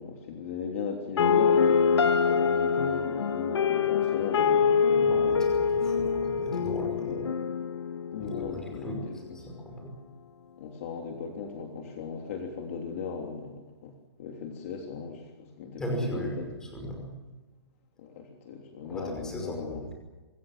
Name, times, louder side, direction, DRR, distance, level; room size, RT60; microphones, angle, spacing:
voice 1, 0.0-5.5 7.0-7.2 8.1-9.1 10.6-13.5 13.8-15.8 16.1-16.4 18.0-19.8, left 5 dB, 30° left, 2 dB, 3.2 m, -37 dB
sound 1, 1.2-9.2, left 6 dB, 75° left, 1.9 m, -25 dB
voice 2, 5.0-7.2 8.2-9.9 15.8-17.1 18.8-19.9, equal, 5° left, 1 dB, 5.5 m, -37 dB
26.5 x 22.0 x 7.5 m, 1.3 s
hypercardioid pair, 175°, 14 cm